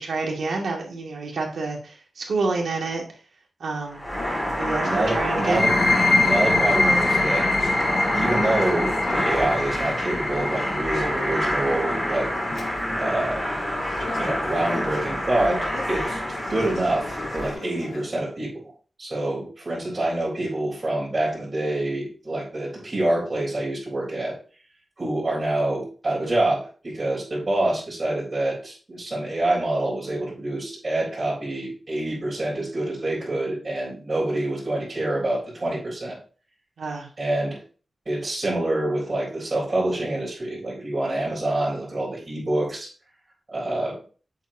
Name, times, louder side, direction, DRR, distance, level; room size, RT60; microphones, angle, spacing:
voice 1, 0.0-3.1 3.6-4.0 4.6-5.7 36.8-37.1, right 3 dB, 85° right, -1 dB, 2.5 m, -28 dB
sound 1, 3.9-17.5, equal, 5° left, 2.8 m, -27 dB
Conversation / Chatter, 4.1-18.1, left 2 dB, 70° left, 1.7 m, -37 dB
voice 2, 4.8-5.8 6.2-7.4 8.1-12.3 13.0-13.4 14.1-16.2 16.5-18.5 19.0-24.3 25.0-36.2 37.2-37.6 38.1-42.9 43.5-43.9, right 1 dB, 35° right, -9 dB, 4.4 m, -26 dB
sound 2, 5.4-12.9, left 3 dB, 40° left, 0.8 m, -25 dB
7.9 x 7.3 x 2.9 m, 0.39 s
wide cardioid pair, 125°, 0 cm